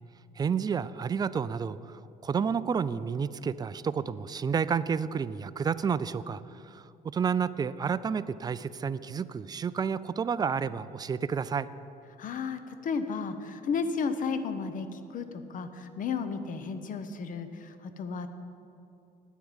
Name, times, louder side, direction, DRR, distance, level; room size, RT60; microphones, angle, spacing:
voice 1, 0.4-11.7, right 6 dB, 25° right, 15 dB, 0.4 m, -30 dB
voice 2, 12.2-18.3, left 5 dB, 50° left, 10 dB, 0.9 m, -33 dB
9.2 x 8.2 x 8.9 m, 2.7 s
cardioid pair, 110°, 17 cm